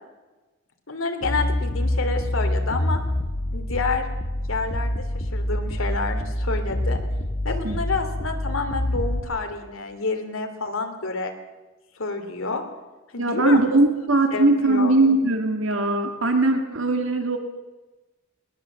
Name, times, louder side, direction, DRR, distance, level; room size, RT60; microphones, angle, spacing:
voice 1, 0.9-3.0 3.5-4.1 4.5-7.0 7.4-11.3 11.9-12.6 13.1-13.6 14.3-15.0, left 3 dB, 85° left, 5 dB, 3.0 m, -29 dB
sound 1, 1.2-9.2, left 1 dB, 55° left, 1.7 m, -26 dB
voice 2, 13.2-17.4, right 2 dB, 75° right, 5 dB, 2.0 m, -20 dB
20.5 x 19.5 x 7.5 m, 1.2 s
head